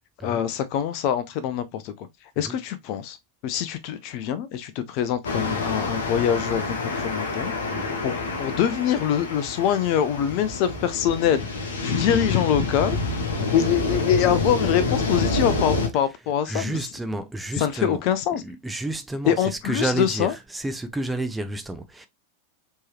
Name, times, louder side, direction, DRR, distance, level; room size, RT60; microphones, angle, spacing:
voice 1, 0.2-2.1 2.4-3.2 3.4-7.5 8.0-11.5 11.8-13.0 13.5-16.8 17.6-18.4 19.3-20.3, left 9 dB, 45° left, 0.6 m, -24 dB
sound 1, 5.2-15.9, left 3 dB, 70° left, 1.2 m, -27 dB
voice 2, 16.5-18.0 18.3-22.1, right 2 dB, 5° right, 0.6 m, -31 dB
4.5 x 3.0 x 2.9 m
figure-of-eight pair, 90°, 0 cm